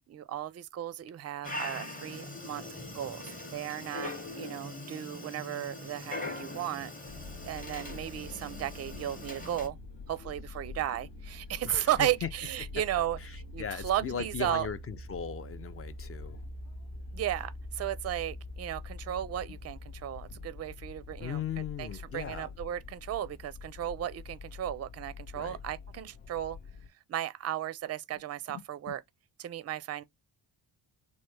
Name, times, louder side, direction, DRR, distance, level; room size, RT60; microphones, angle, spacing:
voice 1, 0.0-3.2 3.5-6.9 7.4-9.8 10.1-14.7 17.1-26.6 27.1-29.0 29.4-30.0, right 12 dB, 35° right, 0.4 m, -35 dB
Dog, 1.4-9.7, left 2 dB, 15° left, 1.0 m, -41 dB
sound 1, 7.1-26.9, left 2 dB, 65° left, 0.9 m, -45 dB
voice 2, 11.6-12.1 13.6-16.4 21.2-22.5 25.3-25.6 28.9-29.0, left 7 dB, 35° left, 0.4 m, -37 dB
3.1 x 2.1 x 3.3 m
supercardioid pair, 50°, 47 cm